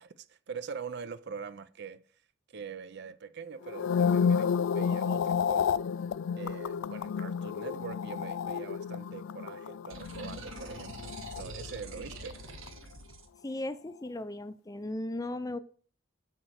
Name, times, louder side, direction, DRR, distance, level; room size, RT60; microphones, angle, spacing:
voice 1, 0.0-2.0 2.5-5.9 6.4-12.4, right 6 dB, 55° right, 0.6 m, -43 dB
sound 1, 3.6-12.0 12.3-12.7, left 6 dB, 70° left, 0.3 m, -31 dB
sound 2, 9.9-13.3, right 2 dB, 90° right, 1.4 m, -45 dB
voice 2, 13.4-15.6, left 1 dB, 20° left, 0.5 m, -36 dB
8.1 x 4.5 x 6.5 m
head